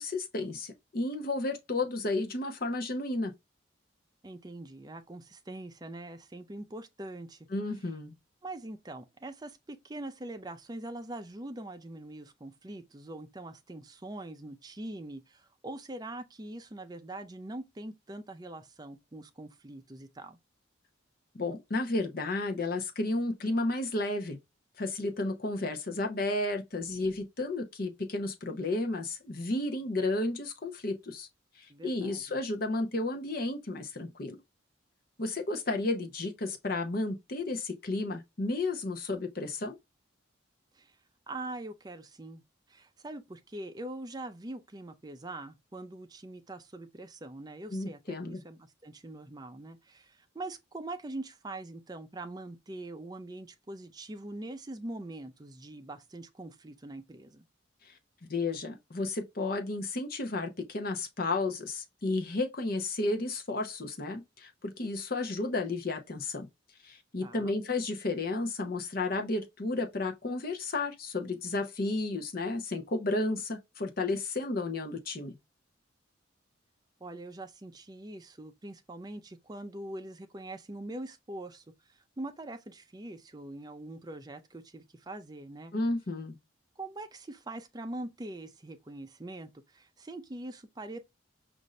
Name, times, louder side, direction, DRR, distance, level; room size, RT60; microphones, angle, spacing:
voice 1, 0.0-3.3 7.5-8.1 21.3-24.4 24.8-31.3 31.6-34.4 35.2-39.8 47.7-48.4 57.9-58.0 58.3-66.5 66.8-75.3 85.7-86.4, left 2 dB, 50° left, 0.8 m, -32 dB
voice 2, 4.2-7.5 8.4-20.4 31.7-32.4 40.7-41.0 41.3-42.4 42.7-57.4 67.2-67.5 77.0-85.7 86.8-91.0, right 2 dB, 20° right, 0.5 m, -43 dB
5.2 x 2.6 x 3.1 m
head